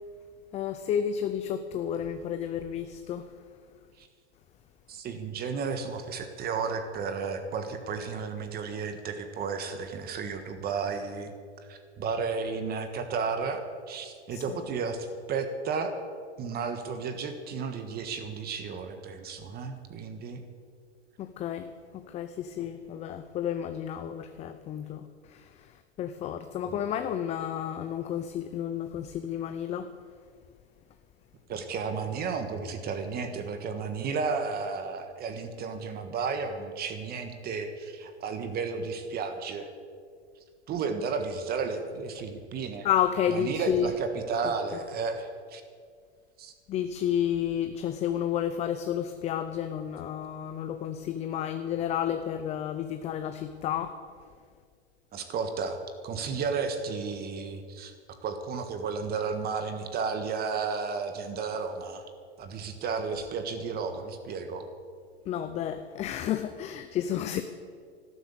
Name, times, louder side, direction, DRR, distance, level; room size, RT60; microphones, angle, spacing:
voice 1, 0.5-3.3 14.3-14.6 21.2-29.9 42.2-42.3 42.8-43.9 46.7-53.9 65.3-67.4, left 9 dB, 20° left, 9 dB, 0.5 m, -31 dB
voice 2, 4.9-11.3 11.7-15.9 16.4-20.4 26.7-26.8 31.5-39.7 40.7-42.9 43.3-45.6 46.4-46.5 55.1-57.9 58.2-62.0 62.4-64.7, right 5 dB, 25° right, 8 dB, 1.5 m, -33 dB
12.5 x 12.5 x 8.2 m, 2.1 s
hypercardioid pair, 130°, 34 cm